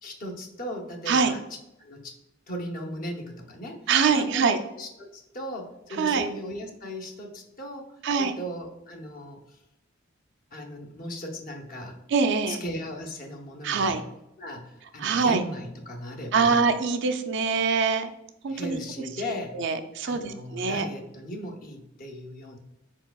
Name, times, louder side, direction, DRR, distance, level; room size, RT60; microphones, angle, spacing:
voice 1, 0.0-2.2 2.5-7.9 8.2-9.4 10.5-12.0 12.5-14.0 14.4-16.7 18.5-19.6 20.1-22.6, equal, 45° left, 1 dB, 0.8 m, -37 dB
voice 2, 3.9-4.6 6.0-6.3 8.0-8.3 12.1-12.6 13.6-14.0 15.0-15.4 16.3-18.1 18.4-18.8 19.5-20.9, right 5 dB, 65° right, 8 dB, 0.4 m, -24 dB
4.6 x 4.2 x 2.3 m, 0.88 s
head